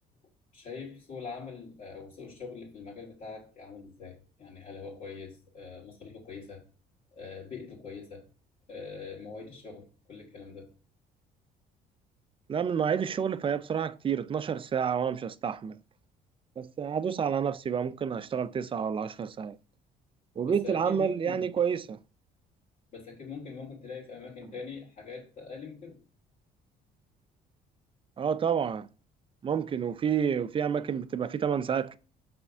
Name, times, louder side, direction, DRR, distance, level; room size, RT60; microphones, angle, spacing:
voice 1, 0.5-6.6 7.1-8.3 8.7-10.7 20.4-21.5 22.9-26.0, left 5 dB, 50° left, 3.2 m, -43 dB
voice 2, 12.5-15.8 16.6-19.6 20.4-22.0 28.2-28.9 29.4-32.0, right 7 dB, 30° right, 0.5 m, -29 dB
6.0 x 4.4 x 5.5 m
cardioid pair, 110°, 17 cm